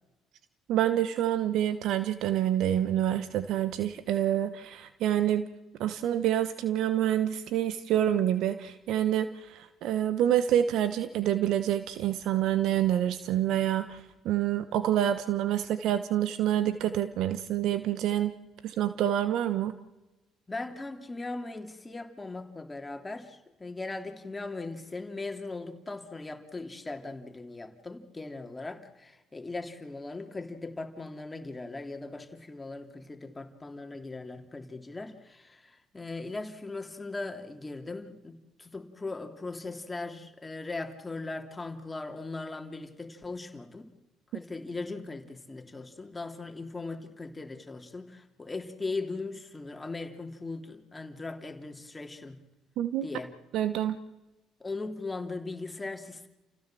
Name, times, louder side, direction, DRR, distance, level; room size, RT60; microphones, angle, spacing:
voice 1, 0.7-5.5 5.8-14.0 14.2-18.3 18.6-19.7 52.8-53.1 53.5-54.0, right 11 dB, 70° right, 12 dB, 1.0 m, -27 dB
voice 2, 20.5-43.9 44.3-52.4 53.0-53.3 54.6-56.3, left 3 dB, 20° left, 5 dB, 3.2 m, -39 dB
29.5 x 16.0 x 7.7 m, 1.1 s
hypercardioid pair, 60°, 0 cm